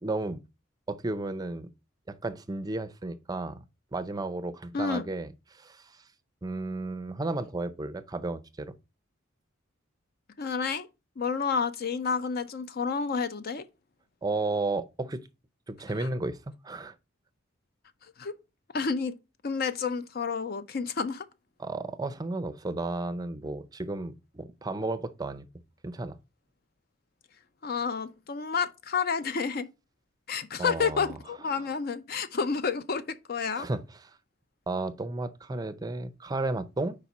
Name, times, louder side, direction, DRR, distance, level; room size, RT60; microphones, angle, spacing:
voice 1, 0.0-0.4 0.9-1.7 2.1-3.6 3.9-6.0 6.4-8.8 14.2-15.2 15.7-16.4 16.6-16.9 21.6-25.4 25.8-26.2 30.6-31.2 33.6-33.8 34.7-37.0, right 2 dB, 20° right, 0.5 m, -33 dB
voice 2, 4.7-5.1 10.4-10.9 11.2-13.6 16.0-16.1 18.2-18.4 18.7-19.2 19.4-21.3 27.6-29.7 30.3-33.7, left 5 dB, 50° left, 0.5 m, -30 dB
5.0 x 4.1 x 5.9 m
head